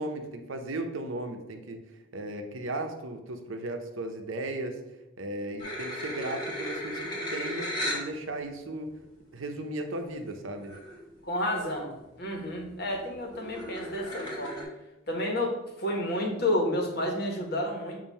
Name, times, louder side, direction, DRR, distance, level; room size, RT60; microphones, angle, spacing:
voice 1, 0.0-1.8 2.1-4.8 5.2-9.0 9.3-10.7, right 2 dB, 70° right, 5 dB, 0.8 m, -36 dB
sound 1, 5.6-8.1 8.8-8.9 10.3-10.4 10.6-11.0 11.4-11.9 12.3-14.6, equal, 20° left, 1.5 m, -36 dB
voice 2, 11.3-11.9 12.2-14.6 15.1-18.0, left 1 dB, 50° left, 1 dB, 1.3 m, -30 dB
7.3 x 2.7 x 5.5 m, 0.98 s
head